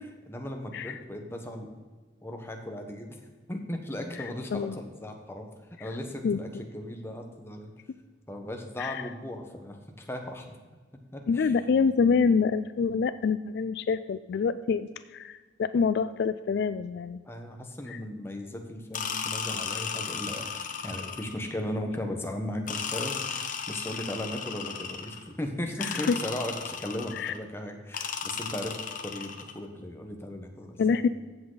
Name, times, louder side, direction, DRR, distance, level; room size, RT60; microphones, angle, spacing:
voice 1, 0.3-1.7 2.2-3.2 3.5-5.5 5.8-7.7 8.3-10.6 11.1-11.6 17.2-31.1, left 1 dB, 15° left, 3 dB, 1.2 m, -37 dB
voice 2, 11.3-17.2 17.9-18.0 25.8-26.2 27.1-27.3 30.8-31.1, left 5 dB, 60° left, 13 dB, 0.3 m, -26 dB
sound 1, 18.9-21.5 22.7-25.3 25.8-27.4 27.9-29.6, left 6 dB, 45° left, 0.9 m, -35 dB
14.5 x 7.8 x 4.0 m, 1.4 s
head